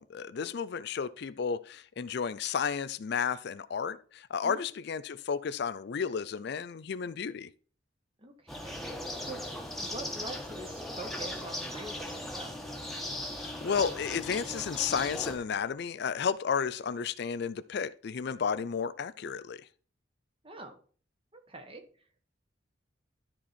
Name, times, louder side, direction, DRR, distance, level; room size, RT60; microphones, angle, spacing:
voice 1, 0.0-7.5 13.4-19.6, left 6 dB, 60° left, 0.4 m, -32 dB
voice 2, 8.2-9.4 9.8-12.5 20.4-20.7 21.3-21.8, right 1 dB, 30° right, 1.4 m, -45 dB
sound 1, 8.5-15.4, left 1 dB, ahead, 1.4 m, -38 dB
13.0 x 4.5 x 4.2 m
head